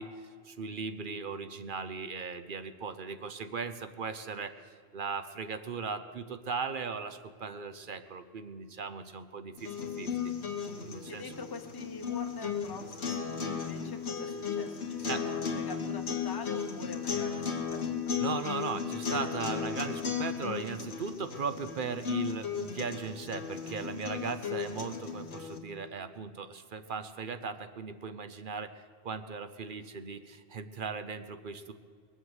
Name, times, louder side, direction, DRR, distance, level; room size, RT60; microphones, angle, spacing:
voice 1, 0.0-4.5 4.9-9.7 10.0-10.1 10.8-11.3 15.1-15.2 18.2-31.7, right 5 dB, 55° right, 10 dB, 0.9 m, -38 dB
sound 1, 9.6-25.6, left 6 dB, 80° left, 1.7 m, -35 dB
voice 2, 11.1-17.9, left 4 dB, 20° left, 4 dB, 0.9 m, -44 dB
21.0 x 7.7 x 8.0 m, 2.2 s
omnidirectional pair, 1.1 m